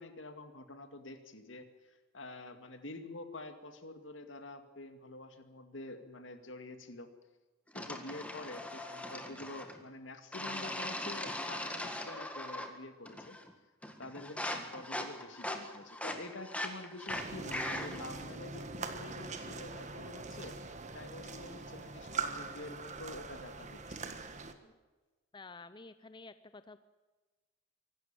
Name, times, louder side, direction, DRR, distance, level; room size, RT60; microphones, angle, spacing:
voice 1, 0.0-7.1 7.7-13.4 14.0-20.6 20.9-24.0, left 2 dB, 70° left, 8 dB, 2.2 m, -47 dB
sound 1, 7.8-9.8 10.3-12.8 13.1-13.5 13.8-18.1, left 1 dB, 5° left, 1.8 m, -40 dB
sound 2, 17.1-24.5, right 4 dB, 35° right, 1.5 m, -42 dB
voice 2, 25.3-26.8, left 3 dB, 25° left, 12 dB, 0.6 m, -51 dB
24.5 x 12.5 x 9.0 m, 1.2 s
head